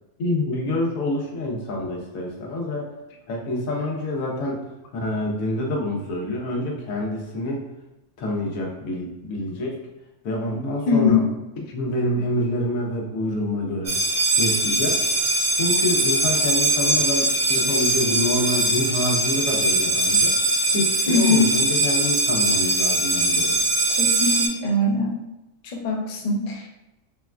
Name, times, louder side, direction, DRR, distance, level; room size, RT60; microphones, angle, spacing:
voice 1, 0.2-2.9 3.3-4.6 4.9-7.6 8.2-9.8 10.2-11.2 11.7-13.9 14.4-15.0 15.5-20.3 20.7-23.6, left 1 dB, 85° left, -1 dB, 1.2 m, -27 dB
voice 2, 10.9-11.2 21.1-21.5 24.0-25.2 25.6-26.7, left 3 dB, 60° left, 0 dB, 0.4 m, -21 dB
sound 1, 13.9-24.5, right 2 dB, 55° right, 0.6 m, -21 dB
3.9 x 2.2 x 2.3 m, 0.98 s
omnidirectional pair, 1.4 m